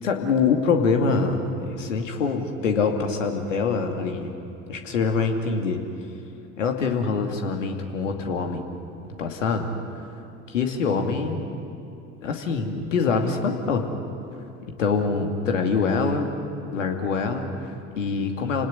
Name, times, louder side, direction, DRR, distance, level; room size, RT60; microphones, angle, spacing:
voice 1, 0.0-4.3 4.7-5.8 6.6-8.6 9.2-9.7 10.5-11.4 12.2-13.9 14.8-16.3 16.7-18.7, left 4 dB, 80° left, 4 dB, 2.6 m, -24 dB
29.0 x 18.5 x 9.7 m, 2.8 s
figure-of-eight pair, 65°, 38 cm